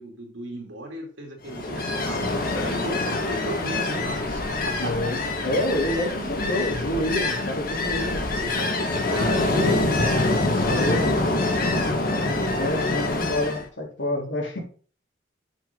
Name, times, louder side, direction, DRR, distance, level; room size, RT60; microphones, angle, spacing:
voice 1, 0.0-5.4 6.1-6.3 8.4-12.0 13.4-13.5, right 1 dB, 85° right, 3.0 m, -36 dB
Ocean, 1.5-13.6, left 2 dB, 50° left, 1.7 m, -25 dB
voice 2, 2.4-2.8 4.8-8.2 10.5-11.2 12.6-14.6, left 1 dB, 75° left, 3.2 m, -28 dB
8.9 x 7.1 x 3.8 m
head